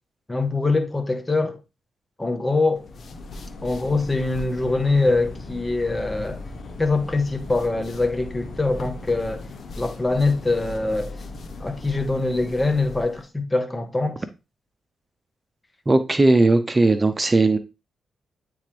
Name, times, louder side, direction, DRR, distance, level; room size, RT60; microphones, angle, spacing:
voice 1, 0.3-1.6 2.2-2.9 3.6-6.4 6.8-9.4 9.8-11.1 11.6-14.2, left 3 dB, 20° left, 1.3 m, -23 dB
sound 1, 2.7-13.3, left 2 dB, 55° left, 1.1 m, -38 dB
voice 2, 15.9-17.6, right 2 dB, 25° right, 0.9 m, -18 dB
8.9 x 3.5 x 3.4 m
supercardioid pair, 55°, 0 cm